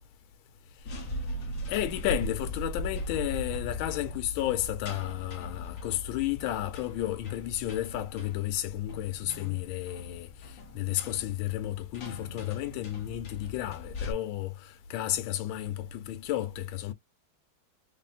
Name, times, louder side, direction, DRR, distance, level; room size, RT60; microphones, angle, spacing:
sound 1, 0.8-14.1, left 1 dB, 50° left, 1.0 m, -39 dB
voice 1, 1.7-16.9, left 13 dB, 75° left, 1.3 m, -32 dB
3.7 x 2.0 x 3.9 m
omnidirectional pair, 2.4 m